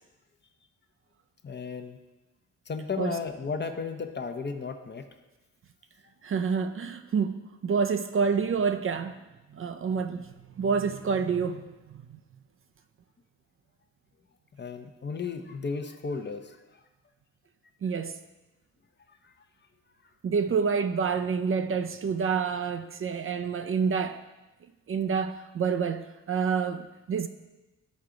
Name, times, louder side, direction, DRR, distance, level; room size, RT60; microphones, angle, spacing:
voice 1, 1.4-2.0 2.7-5.1 14.6-16.8 19.1-19.3 20.5-20.6, left 5 dB, 35° left, 0.7 m, -34 dB
voice 2, 6.2-9.2 9.5-10.3 10.6-12.2 17.8-18.2 20.2-24.2 24.9-27.3, right 6 dB, 45° right, 0.5 m, -28 dB
12.5 x 4.7 x 3.8 m
wide cardioid pair, 110°, 30 cm